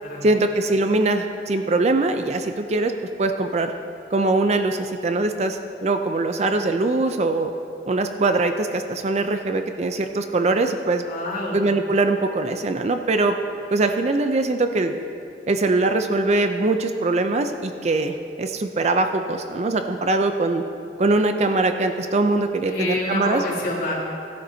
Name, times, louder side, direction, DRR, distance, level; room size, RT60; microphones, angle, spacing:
voice 1, 0.2-2.9 3.2-3.7 4.1-7.5 7.9-11.0 11.5-13.3 13.7-15.0 15.5-20.6 21.0-23.4, right 2 dB, 40° right, 7 dB, 0.4 m, -22 dB
voice 2, 11.0-11.6 22.6-23.9, left 1 dB, 55° left, -5 dB, 3.1 m, -27 dB
16.5 x 11.0 x 2.7 m, 2.6 s
head